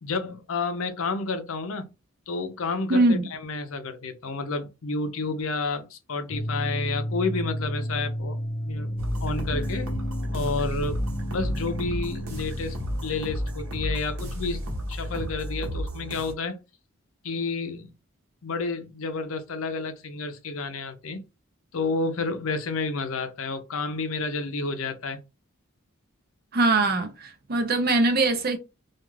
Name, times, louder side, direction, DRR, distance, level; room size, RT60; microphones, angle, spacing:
voice 1, 0.0-1.9 2.3-8.4 8.7-8.9 9.2-9.9 10.3-11.0 11.3-16.6 17.2-17.9 18.4-21.2 21.7-25.2, left 3 dB, 75° left, 0.6 m, -30 dB
voice 2, 2.9-3.3 26.5-28.6, right 2 dB, 45° right, 0.6 m, -22 dB
sound 1, 6.3-15.1, equal, 25° left, 0.3 m, -33 dB
sound 2, 9.0-16.3, equal, 85° right, 0.9 m, -32 dB
2.4 x 2.3 x 3.1 m
head